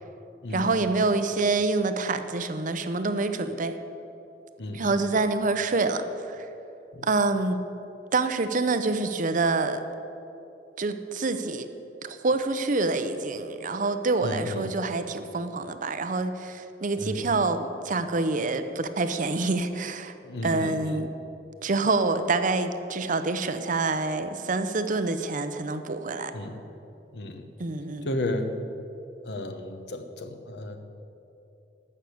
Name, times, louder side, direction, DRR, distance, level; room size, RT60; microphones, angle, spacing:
voice 1, 0.5-3.8 4.7-6.5 7.0-7.6 8.1-9.8 10.8-11.7 12.0-20.1 20.4-21.1 21.6-26.3 27.6-28.1, right 3 dB, 45° right, 10 dB, 0.7 m, -26 dB
voice 2, 4.6-4.9 6.9-7.1 14.2-14.7 17.0-17.3 20.2-21.0 26.3-26.6 27.1-27.5 28.0-28.5 29.2-30.8, left 1 dB, 65° left, 7 dB, 1.0 m, -33 dB
12.5 x 6.5 x 8.4 m, 2.8 s
head